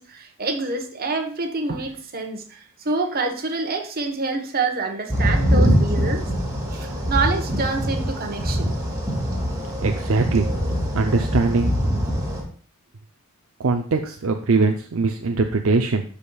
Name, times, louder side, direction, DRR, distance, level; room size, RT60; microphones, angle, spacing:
voice 1, 0.0-6.3 6.6-8.7, right 3 dB, 45° right, 1.2 m, -27 dB
sound 1, 5.1-12.4, equal, 15° right, 2.0 m, -23 dB
voice 2, 9.8-10.5 10.9-11.7 13.6-16.0, right 3 dB, 65° right, 0.6 m, -21 dB
12.0 x 5.0 x 2.3 m
head